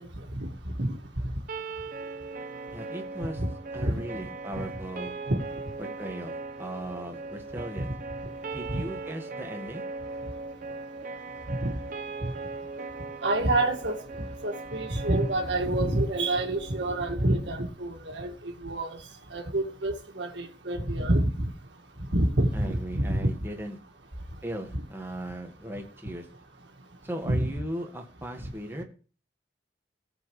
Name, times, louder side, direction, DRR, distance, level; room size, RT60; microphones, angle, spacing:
sound 1, 1.5-17.5, right 3 dB, 45° right, 1.0 m, -39 dB
voice 1, 2.7-3.4 3.7-5.2 5.8-7.9 8.5-9.8 22.5-23.8 24.4-26.3 27.0-28.8, right 1 dB, 10° right, 2 dB, 1.6 m, -37 dB
voice 2, 13.2-14.0 14.4-19.0 19.3-21.5 22.1-23.3 27.2-27.5, right 1 dB, 70° right, 3 dB, 2.0 m, -27 dB
18.0 x 7.2 x 3.2 m, 0.38 s
head